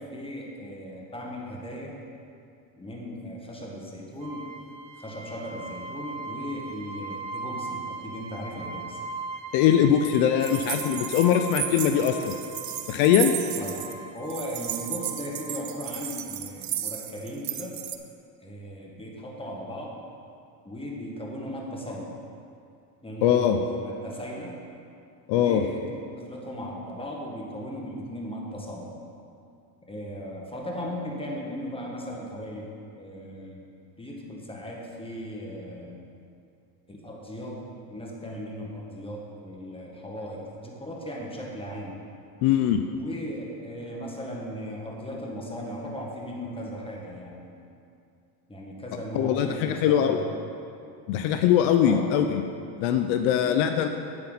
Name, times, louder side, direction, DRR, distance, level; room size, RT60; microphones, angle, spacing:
voice 1, 0.0-2.0 2.8-4.5 5.0-9.0 13.6-13.9 14.1-17.7 18.4-19.9 20.6-22.2 23.0-24.6 25.4-25.9 26.2-29.0 29.9-36.1 36.9-42.0 43.0-47.6 48.5-50.3 51.8-52.1 53.4-53.6, equal, 10° left, -2 dB, 1.8 m, -37 dB
sound 1, 4.2-15.6, right 3 dB, 60° right, 1.5 m, -39 dB
voice 2, 9.5-12.3 12.9-13.3 23.2-23.6 25.3-25.6 42.4-42.8 49.1-50.2 51.1-52.4 52.8-53.9, left 9 dB, 70° left, 6 dB, 0.7 m, -21 dB
sound 2, 10.4-13.9 14.3-17.9, right 11 dB, 35° right, 0.6 m, -34 dB
8.6 x 8.5 x 4.1 m, 2.5 s
supercardioid pair, 90°, 50 cm